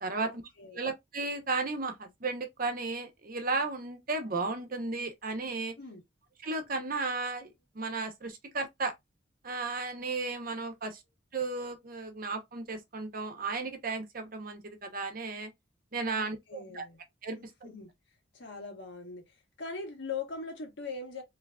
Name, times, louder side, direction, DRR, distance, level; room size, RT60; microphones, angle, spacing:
voice 1, 0.1-0.8 5.8-6.0 16.1-17.0 17.3-17.9 18.3-21.2, left 4 dB, 80° left, 1.4 m, -41 dB
voice 2, 0.7-5.7 6.4-8.9 9.4-11.0 11.3-15.5 15.9-16.8 17.2-17.7, right 3 dB, 50° right, 0.9 m, -34 dB
3.6 x 3.2 x 2.3 m
head